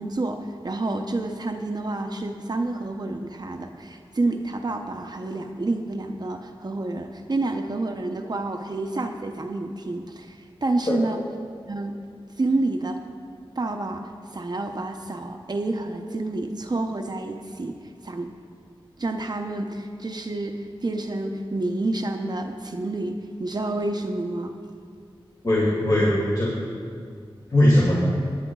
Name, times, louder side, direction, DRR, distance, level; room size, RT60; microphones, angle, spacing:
voice 1, 0.0-11.2 11.7-12.0 12.4-13.0 13.6-17.8 18.0-18.3 19.0-24.6, right 2 dB, 45° right, 4 dB, 0.7 m, -29 dB
voice 2, 25.4-26.5 27.5-27.9, left 1 dB, 40° left, -6 dB, 2.4 m, -19 dB
20.0 x 10.5 x 2.3 m, 2.2 s
wide cardioid pair, 65°, 10 cm